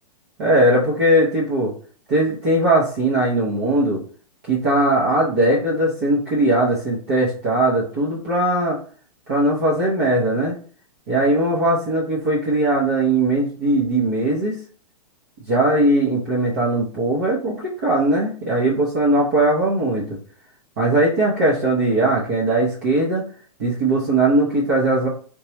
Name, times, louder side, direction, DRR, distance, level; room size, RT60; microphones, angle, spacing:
voice 1, 0.4-1.7 2.1-4.0 4.5-8.8 9.3-10.5 11.1-14.6 15.5-20.2 20.8-23.2 23.6-25.1, right 1 dB, 25° right, -5 dB, 0.6 m, -19 dB
2.8 x 2.2 x 4.1 m, 0.43 s
hypercardioid pair, 175°, 21 cm